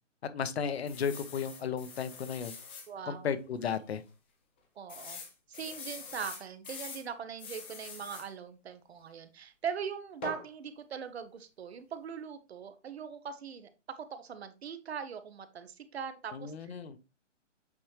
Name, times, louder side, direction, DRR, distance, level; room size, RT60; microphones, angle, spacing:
voice 1, 0.3-2.5 3.1-4.0 16.3-17.0, left 7 dB, 55° left, 12 dB, 1.1 m, -34 dB
sound 1, 0.9-2.9 3.4-3.5 3.8-3.9 4.9-7.1 7.4-8.3 10.2-10.5, left 4 dB, 10° left, 0.4 m, -44 dB
voice 2, 2.9-3.3 4.8-5.2 5.5-16.8, right 7 dB, 55° right, 10 dB, 1.1 m, -41 dB
8.5 x 4.2 x 3.2 m, 0.29 s
hypercardioid pair, 140°, 38 cm